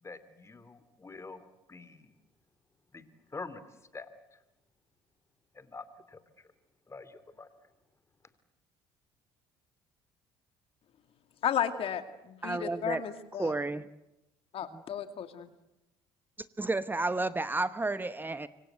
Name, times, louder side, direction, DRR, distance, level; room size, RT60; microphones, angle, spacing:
voice 1, 0.0-2.1 2.9-3.1 3.3-3.6 3.9-4.1 5.5-6.2 6.9-7.5, left 3 dB, 25° left, 13 dB, 2.9 m, -46 dB
voice 2, 11.4-13.5 14.5-15.5, left 9 dB, 55° left, 9 dB, 2.3 m, -34 dB
voice 3, 12.4-13.0 13.4-13.9 16.6-18.5, right 2 dB, 15° right, 14 dB, 1.0 m, -31 dB
26.5 x 24.0 x 8.1 m, 0.92 s
hypercardioid pair, 65°, 12 cm